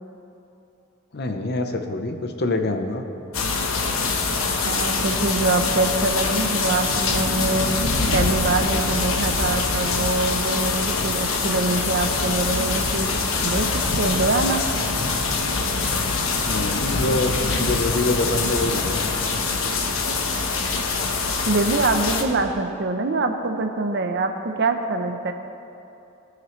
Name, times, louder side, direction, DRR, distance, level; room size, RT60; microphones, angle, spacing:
voice 1, 1.1-3.0 16.4-19.3, left 2 dB, 55° left, 5 dB, 0.9 m, -25 dB
sound 1, 3.3-22.2, left 4 dB, 85° left, 1.2 m, -24 dB
voice 2, 4.6-7.8 8.1-13.1 13.4-14.6 21.4-25.3, right 3 dB, 55° right, 6 dB, 0.8 m, -24 dB
19.0 x 9.1 x 3.2 m, 2.8 s
head